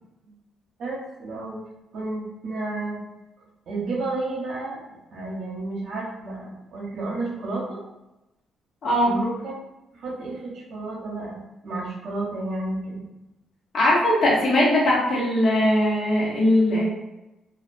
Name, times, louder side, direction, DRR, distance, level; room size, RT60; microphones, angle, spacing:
voice 1, 0.8-1.6 1.9-3.0 3.7-7.8 9.0-9.5 9.9-13.1, right 2 dB, 65° right, -4 dB, 0.9 m, -31 dB
voice 2, 8.8-9.1 13.7-16.9, left 1 dB, 55° left, -5 dB, 1.0 m, -20 dB
2.4 x 2.2 x 2.5 m, 0.96 s
cardioid pair, 90°, 0 cm